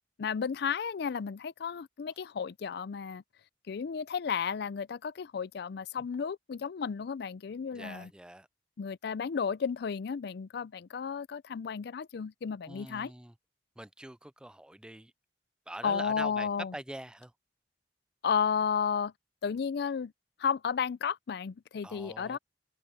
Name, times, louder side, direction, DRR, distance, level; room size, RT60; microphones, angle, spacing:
voice 1, 0.2-3.2 3.7-8.1 8.8-13.1 15.8-16.8 18.2-19.1 19.4-20.1 20.4-22.4, left 6 dB, 65° left, 0.4 m, -33 dB
voice 2, 7.7-8.5 12.7-13.3 13.8-15.1 15.7-17.3 21.8-22.4, right 1 dB, 5° right, 0.4 m, -44 dB
head